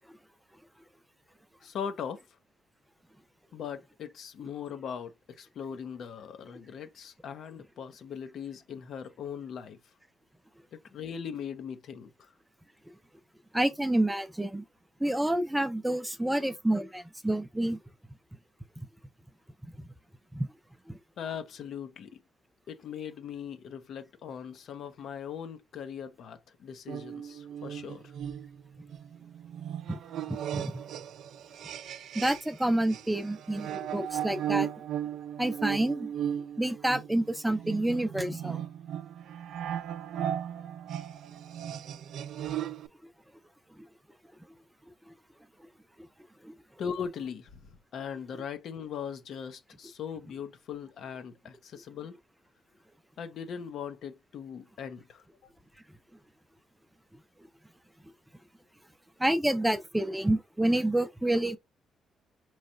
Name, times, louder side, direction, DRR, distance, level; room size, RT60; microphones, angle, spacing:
voice 1, 1.6-2.2 3.5-9.8 10.7-12.3 21.2-22.2 22.7-28.1 46.8-47.6 47.9-52.2 53.2-55.2, left 7 dB, 70° left, 0.6 m, -40 dB
voice 2, 13.5-14.6 15.0-17.8 19.8-19.9 20.3-20.5 20.9-21.0 29.9-30.0 30.3-30.7 32.1-34.7 35.4-36.1 36.6-38.6 46.4-46.5 59.2-61.6, right 1 dB, 5° right, 0.5 m, -28 dB
sound 1, 26.9-32.6 32.9-42.9, right 10 dB, 75° right, 0.4 m, -36 dB
4.1 x 3.2 x 2.5 m
cardioid pair, 90°, 0 cm